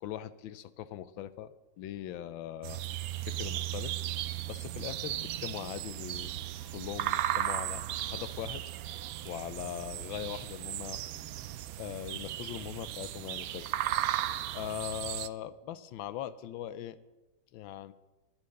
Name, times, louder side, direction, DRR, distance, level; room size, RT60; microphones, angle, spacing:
voice 1, 0.0-2.8 3.2-4.0 4.5-6.3 6.7-8.6 9.2-11.0 11.8-13.7 14.5-17.0 17.5-17.9, left 11 dB, 90° left, 14 dB, 1.4 m, -40 dB
sound 1, 2.6-15.3, right 13 dB, 85° right, 0.7 m, -36 dB
10.5 x 9.8 x 6.5 m, 1.1 s
omnidirectional pair, 2.1 m